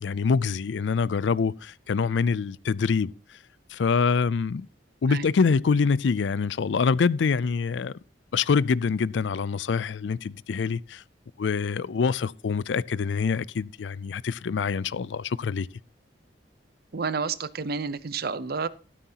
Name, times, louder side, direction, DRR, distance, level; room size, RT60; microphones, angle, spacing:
voice 1, 0.0-3.4 3.7-4.7 5.0-7.9 8.3-11.0 11.4-15.7, left 5 dB, 75° left, 0.4 m, -25 dB
voice 2, 16.9-18.7, right 5 dB, 55° right, 0.7 m, -30 dB
13.0 x 13.0 x 2.9 m
head